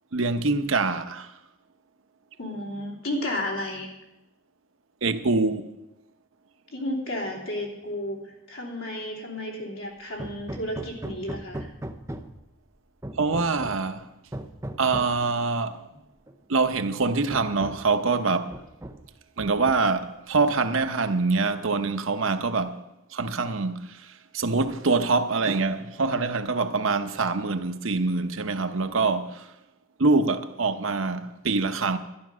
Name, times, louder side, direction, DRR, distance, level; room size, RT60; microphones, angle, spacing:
voice 1, 0.1-1.3 5.0-5.7 13.2-14.1 14.8-15.8 16.5-18.6 19.4-22.8 23.1-24.0 24.3-29.5 30.0-32.0, right 3 dB, 80° right, 0.9 m, -25 dB
voice 2, 2.4-3.9 6.7-11.7, left 1 dB, 85° left, 3.1 m, -32 dB
Hammer, 10.2-12.5 13.0-13.9 14.3-15.2 16.3-16.4 16.8-16.9 17.3-18.0 18.5-19.1 19.4-20.1, right 1 dB, 15° right, 0.6 m, -38 dB
11.5 x 10.5 x 6.3 m
head